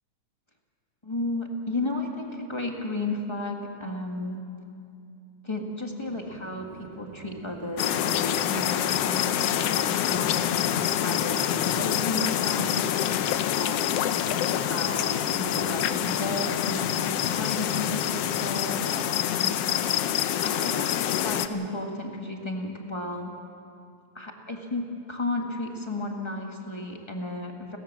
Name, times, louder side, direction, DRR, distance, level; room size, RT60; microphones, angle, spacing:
voice 1, 1.0-4.4 5.4-12.8 13.6-14.1 14.5-19.5 20.4-23.3 24.1-27.8, left 2 dB, 20° left, 2 dB, 0.7 m, -34 dB
Chatter / Fixed-wing aircraft airplane, 5.9-19.3, right 6 dB, 90° right, 2.8 m, -46 dB
sound 1, 7.8-21.5, left 11 dB, 80° left, 1.4 m, -26 dB
30.0 x 13.5 x 7.4 m, 2.6 s
omnidirectional pair, 3.5 m